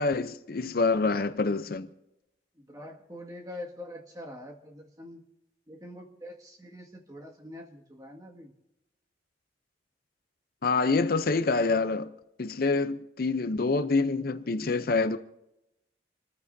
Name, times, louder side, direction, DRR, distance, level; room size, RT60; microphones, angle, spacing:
voice 1, 0.0-1.9 10.6-12.1 12.4-15.2, left 3 dB, 55° left, 0.6 m, -26 dB
voice 2, 2.5-5.2 5.7-8.5, left 1 dB, 20° right, 1.9 m, -44 dB
28.0 x 14.0 x 2.7 m
head